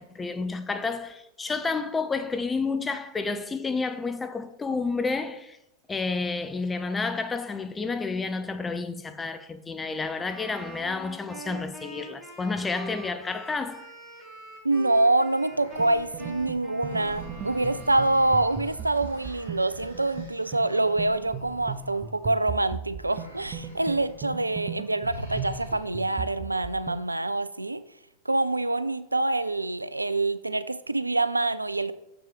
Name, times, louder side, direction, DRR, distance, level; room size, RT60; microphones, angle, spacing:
voice 1, 0.0-5.6 5.9-13.9, left 4 dB, 15° left, 0.7 m, -30 dB
Wind instrument woodwind instrument, 10.3-18.7, right 2 dB, ahead, 2.7 m, -44 dB
voice 2, 14.6-27.8 28.3-31.9, right 2 dB, 85° right, 0.3 m, -26 dB
sound 1, 15.4-22.6 23.0-24.2 24.5-24.7 25.0-26.1, right 1 dB, 75° left, 1.9 m, -45 dB
sound 2, 15.8-27.0, right 6 dB, 30° right, 0.7 m, -38 dB
6.7 x 6.0 x 5.0 m
figure-of-eight pair, 90°, 0 cm